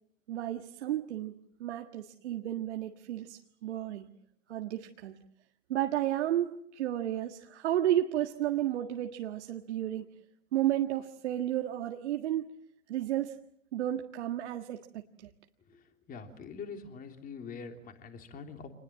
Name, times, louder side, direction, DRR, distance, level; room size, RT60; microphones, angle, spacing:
voice 1, 0.3-1.3 1.6-4.1 4.5-5.1 5.7-10.0 10.5-12.4 12.9-13.3 13.7-14.8, right 12 dB, 60° right, 3 dB, 1.7 m, -32 dB
voice 2, 15.7-18.7, left 5 dB, 20° left, 5 dB, 3.3 m, -44 dB
27.5 x 20.5 x 7.6 m, 0.71 s
hypercardioid pair, 120°, 39 cm